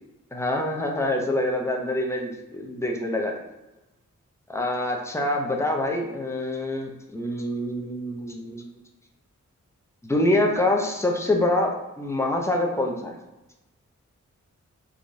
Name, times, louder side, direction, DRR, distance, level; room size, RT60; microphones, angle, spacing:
voice 1, 0.3-3.3 4.5-8.7 10.0-13.2, left 1 dB, 10° left, 1 dB, 0.5 m, -25 dB
3.0 x 2.2 x 2.5 m, 1.0 s
cardioid pair, 45°, 32 cm